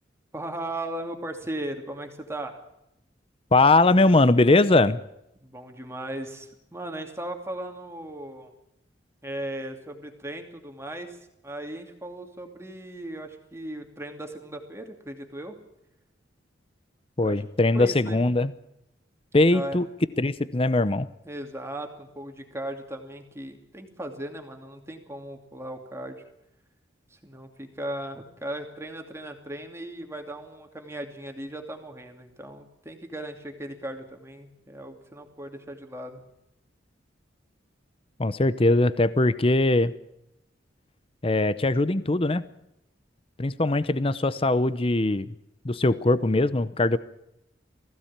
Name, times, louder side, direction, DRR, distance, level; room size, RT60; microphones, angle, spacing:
voice 1, 0.3-2.6 5.4-8.5 9.2-11.2 11.4-15.6 17.2-17.4 17.7-18.2 19.5-19.8 21.2-26.2 27.1-36.2, right 1 dB, 15° right, 4 dB, 2.7 m, -37 dB
voice 2, 3.5-5.0 17.2-18.5 19.3-19.9 20.2-21.1 38.2-39.9 41.2-42.4 43.4-45.3 45.6-47.0, left 2 dB, 30° left, 15 dB, 0.7 m, -21 dB
19.5 x 16.0 x 8.8 m, 0.84 s
head